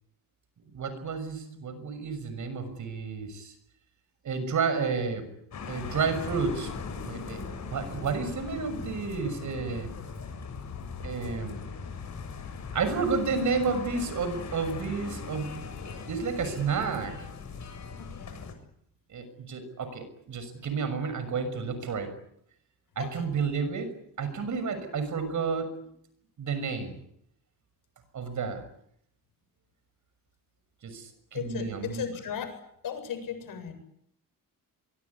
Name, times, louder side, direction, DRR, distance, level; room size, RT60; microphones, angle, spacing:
voice 1, 0.7-3.5 4.2-5.3 5.7-6.7 7.0-7.4 7.7-9.9 11.0-11.6 12.7-15.5 16.1-17.2 19.1-22.1 23.0-25.7 26.4-27.0 28.1-28.6 30.8-32.0, right 5 dB, 60° right, 11 dB, 6.4 m, -31 dB
sound 1, 5.5-18.5, left 5 dB, 55° left, 7.1 m, -39 dB
voice 2, 18.0-18.4 23.0-23.3 31.3-32.6 32.8-33.7, left 7 dB, 75° left, 7 dB, 7.9 m, -36 dB
24.0 x 24.0 x 9.8 m, 0.73 s
cardioid pair, 135°, 34 cm